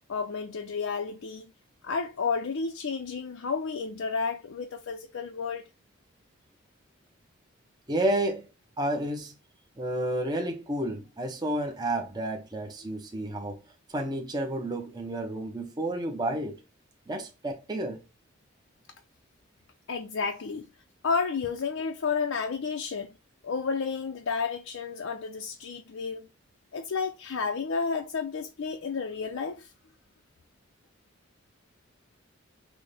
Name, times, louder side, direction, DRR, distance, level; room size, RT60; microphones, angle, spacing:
voice 1, 0.1-1.5 1.8-5.7 19.9-20.7 21.0-23.1 23.4-26.3 26.7-29.7, left 5 dB, 85° left, 0.5 m, -31 dB
voice 2, 7.9-8.5 8.8-9.3 9.8-13.6 13.9-16.6 17.1-18.0, right 1 dB, 20° right, 0.6 m, -31 dB
6.1 x 2.1 x 3.3 m
head